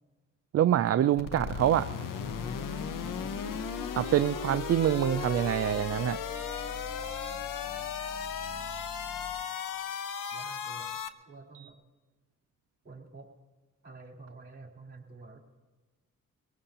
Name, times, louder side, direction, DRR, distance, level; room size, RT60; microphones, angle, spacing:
voice 1, 0.5-1.9 3.9-6.2, right 11 dB, 50° right, 11 dB, 0.4 m, -25 dB
sound 1, 1.2-11.1, left 7 dB, 90° left, 0.8 m, -36 dB
sound 2, 2.2-9.3, left 1 dB, 45° left, 5.6 m, -44 dB
voice 2, 3.0-3.4 10.3-11.0 11.3-11.8 12.8-13.3 13.8-15.4, right 3 dB, 30° right, 0 dB, 3.8 m, -49 dB
sound 3, 4.1-4.3 4.8-5.1 5.6-5.9 6.4-6.6 7.1-7.4 7.9-8.1 8.6-8.9 9.4-9.6 10.1-10.4 10.8-11.1 11.5-11.7, right 10 dB, 75° right, 0.9 m, -53 dB
23.0 x 18.5 x 2.9 m, 1.3 s
cardioid pair, 90°, 32 cm